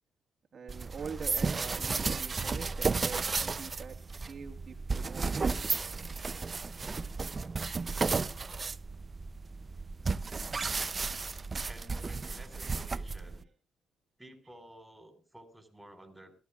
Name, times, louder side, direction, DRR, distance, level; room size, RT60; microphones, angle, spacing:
voice 1, 0.5-4.0 4.2-5.7 11.9-12.0 12.6-12.7, right 6 dB, 45° right, 2 dB, 1.7 m, -44 dB
sound 1, 0.7-13.4, right 4 dB, 30° right, 0.5 m, -33 dB
voice 2, 11.7-13.5 14.2-16.3, right 1 dB, 5° right, 7 dB, 4.2 m, -53 dB
20.0 x 14.5 x 2.4 m, 0.32 s
cardioid pair, 90°, 0 cm